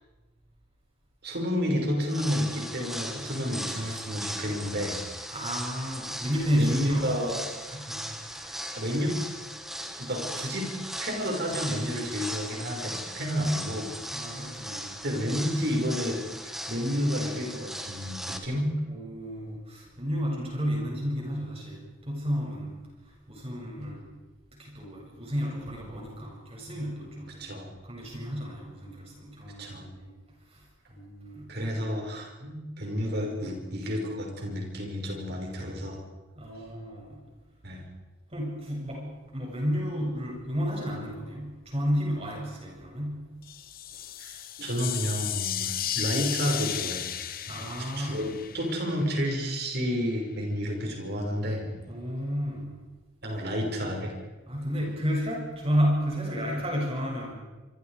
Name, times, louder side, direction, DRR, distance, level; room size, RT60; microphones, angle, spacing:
voice 1, 1.2-5.0 6.6-7.4 8.7-9.2 9.8-10.7 11.0-13.9 14.6-14.8 15.0-18.7 27.4-27.7 29.6-29.9 31.5-36.0 37.6-37.9 44.2-47.1 47.5-51.7 53.2-54.1, equal, 55° right, 1 dB, 5.9 m, -30 dB
sound 1, 2.0-18.4, equal, ahead, 1.9 m, -38 dB
voice 2, 5.3-7.1 7.7-8.6 14.1-14.9 18.9-22.8 23.3-24.0 24.6-27.4 27.8-30.1 30.5-30.6 30.9-31.4 36.3-37.2 38.3-43.3 47.4-48.3 51.9-52.8 54.5-57.3, equal, 30° right, -1 dB, 7.7 m, -32 dB
sound 2, 43.4-49.3, left 11 dB, 45° left, 1.1 m, -34 dB
26.5 x 25.5 x 5.1 m, 1.2 s
head